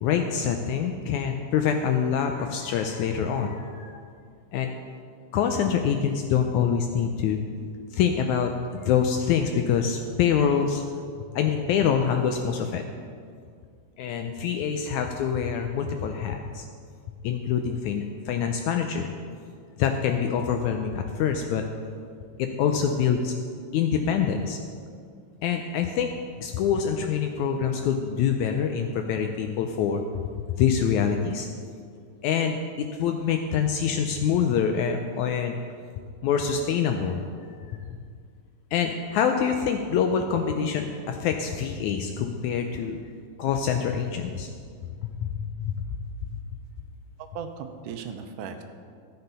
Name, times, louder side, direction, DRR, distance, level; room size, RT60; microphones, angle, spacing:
voice 1, 0.0-4.0 4.5-4.7 5.3-7.4 7.9-11.0 11.4-12.8 14.0-16.7 17.2-19.1 19.8-21.6 22.4-23.3 23.7-24.6 25.4-26.1 26.4-30.0 30.6-31.5 32.2-35.6 36.2-37.3 37.6-37.7 38.7-43.0 43.4-44.5 45.0-45.8, left 7 dB, 80° left, 4 dB, 1.9 m, -25 dB
voice 2, 47.2-48.6, right 7 dB, 85° right, 6 dB, 2.3 m, -37 dB
13.0 x 7.9 x 5.5 m, 2.2 s
omnidirectional pair, 3.7 m